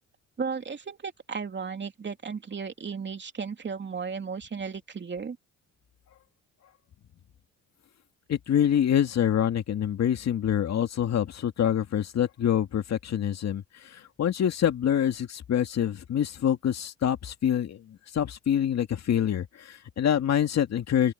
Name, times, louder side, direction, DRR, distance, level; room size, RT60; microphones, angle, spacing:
voice 1, 0.4-5.4, right 5 dB, 35° right, 2.8 m, -35 dB
voice 2, 8.3-21.1, left 9 dB, 60° left, 2.4 m, -26 dB
open air
cardioid pair, 90°, 30 cm